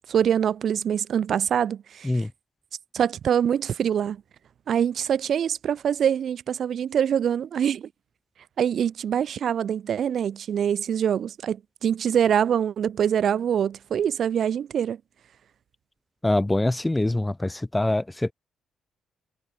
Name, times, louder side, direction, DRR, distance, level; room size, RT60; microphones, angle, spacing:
voice 1, 0.1-2.1 2.9-4.2 4.7-7.9 8.6-15.0, right 8 dB, 60° right, 6.6 m, -24 dB
voice 2, 16.2-18.3, left 2 dB, 10° left, 1.9 m, -24 dB
cardioid pair, 90°, 0 cm